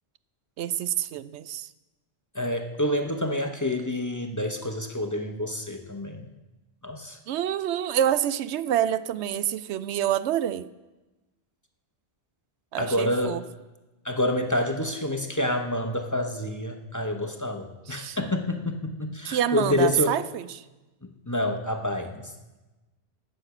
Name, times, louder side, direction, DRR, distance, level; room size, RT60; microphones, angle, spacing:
voice 1, 0.6-1.7 7.3-10.7 12.7-13.4 17.9-18.2 19.2-20.6, right 10 dB, 90° right, 15 dB, 0.9 m, -27 dB
voice 2, 2.3-6.3 6.8-7.2 12.8-13.4 14.0-20.2 21.0-22.3, left 1 dB, 20° left, 5 dB, 0.8 m, -28 dB
16.5 x 6.6 x 5.9 m, 1.1 s
omnidirectional pair, 1.1 m